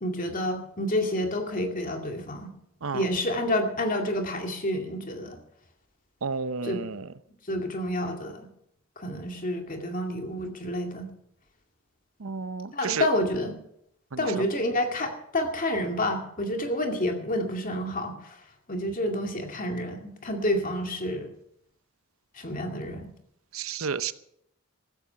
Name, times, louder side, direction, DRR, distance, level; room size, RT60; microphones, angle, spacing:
voice 1, 0.0-2.5 2.9-5.4 6.7-6.8 7.5-8.5 9.0-11.1 12.7-13.5 14.2-18.4 18.7-21.3 22.4-23.1, left 1 dB, 40° left, 4 dB, 2.3 m, -29 dB
voice 2, 6.2-7.1 12.2-13.1 14.1-14.5 23.5-24.1, right 5 dB, 85° right, 13 dB, 0.8 m, -32 dB
14.5 x 14.0 x 5.8 m, 0.74 s
head